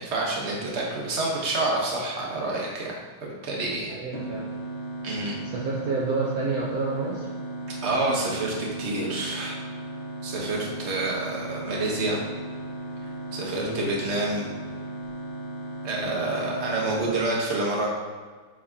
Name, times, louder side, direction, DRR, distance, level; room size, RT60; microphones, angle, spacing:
voice 1, 0.0-3.9 5.0-5.4 7.8-9.6 10.2-12.2 13.3-14.4 15.8-17.9, right 2 dB, 45° right, -2 dB, 1.4 m, -28 dB
voice 2, 3.7-4.4 5.4-7.3 13.6-13.8 16.9-17.3, right 3 dB, 65° right, -5 dB, 1.3 m, -29 dB
sound 1, 4.1-17.1, right 2 dB, 20° left, 0.9 m, -36 dB
6.9 x 4.8 x 2.8 m, 1.5 s
omnidirectional pair, 1.8 m